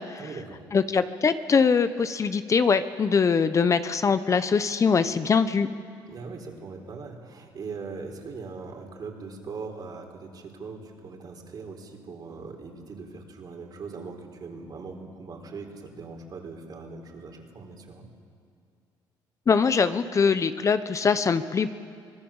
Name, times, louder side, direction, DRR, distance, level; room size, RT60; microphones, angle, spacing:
voice 1, 0.2-0.6 6.1-18.1, right 4 dB, 50° right, 2 dB, 4.1 m, -40 dB
voice 2, 0.7-5.7 19.5-21.8, left 5 dB, 35° left, 11 dB, 0.9 m, -22 dB
25.0 x 19.0 x 7.2 m, 2.5 s
cardioid pair, 90°, 9 cm